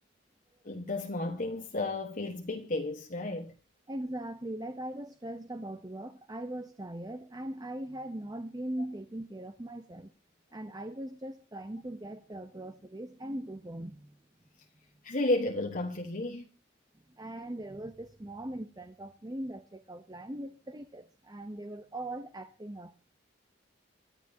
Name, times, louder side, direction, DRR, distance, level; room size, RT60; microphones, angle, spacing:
voice 1, 0.6-3.5 15.0-16.4, left 2 dB, 45° left, 1.3 m, -32 dB
voice 2, 3.9-10.1 10.5-14.2 17.1-22.9, right 1 dB, 20° right, 0.7 m, -40 dB
27.0 x 12.0 x 2.8 m
head